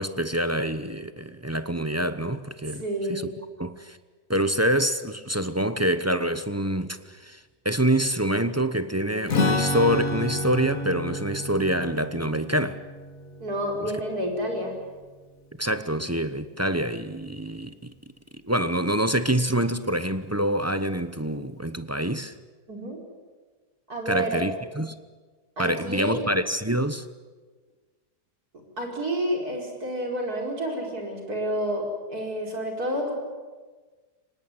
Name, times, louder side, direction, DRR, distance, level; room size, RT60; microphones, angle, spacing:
voice 1, 0.0-2.8 3.1-3.3 3.6-4.0 4.3-7.4 7.6-12.8 15.6-17.9 18.5-22.3 24.1-24.9 25.6-27.1, right 1 dB, 15° right, 0.6 m, -26 dB
voice 2, 2.8-3.3 13.4-14.8 22.7-23.0 23.9-24.4 25.6-26.2 28.8-31.8 32.1-33.1, right 1 dB, 65° right, 5.5 m, -29 dB
Strum, 9.3-14.9, left 2 dB, 55° left, 2.3 m, -30 dB
25.0 x 19.5 x 9.7 m
omnidirectional pair, 1.7 m